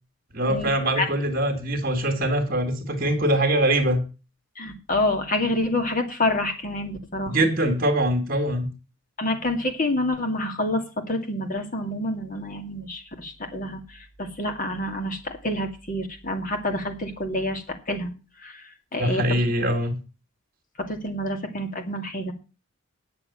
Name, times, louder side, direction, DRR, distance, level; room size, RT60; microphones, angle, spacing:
voice 1, 0.3-4.0 7.3-8.7 19.0-20.0, right 1 dB, 45° right, 2 dB, 1.9 m, -23 dB
voice 2, 4.6-7.4 9.2-18.1 18.4-19.2 20.8-22.3, left 1 dB, 40° left, 4 dB, 2.3 m, -28 dB
9.7 x 6.8 x 8.4 m, 0.33 s
head